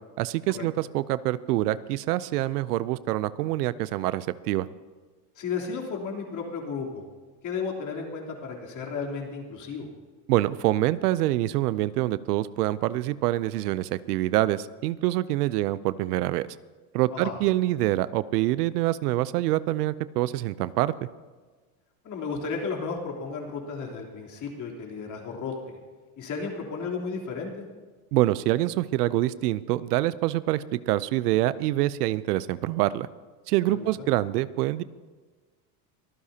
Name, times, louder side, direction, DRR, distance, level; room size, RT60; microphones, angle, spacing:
voice 1, 0.2-4.7 10.3-16.5 16.9-20.9 28.1-33.1 33.5-34.8, right 16 dB, 90° right, 17 dB, 0.7 m, -25 dB
voice 2, 5.4-7.0 7.4-9.9 17.1-17.4 22.0-25.8 26.2-27.7 33.7-34.1, left 5 dB, 40° left, -1 dB, 3.5 m, -34 dB
24.0 x 14.5 x 2.9 m, 1.4 s
supercardioid pair, 120°, 45 cm